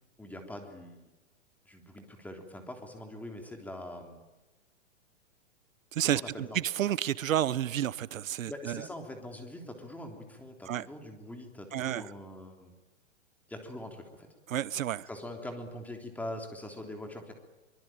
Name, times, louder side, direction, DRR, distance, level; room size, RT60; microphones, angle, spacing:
voice 1, 0.2-1.0 1.6-4.2 6.1-6.6 8.5-12.7 13.5-14.3 15.1-17.3, left 1 dB, 5° left, 3.4 m, -43 dB
voice 2, 5.9-8.8 10.7-10.9 11.7-12.0 14.5-15.1, right 11 dB, 85° right, 1.0 m, -30 dB
24.0 x 24.0 x 9.0 m
hypercardioid pair, 150°, 39 cm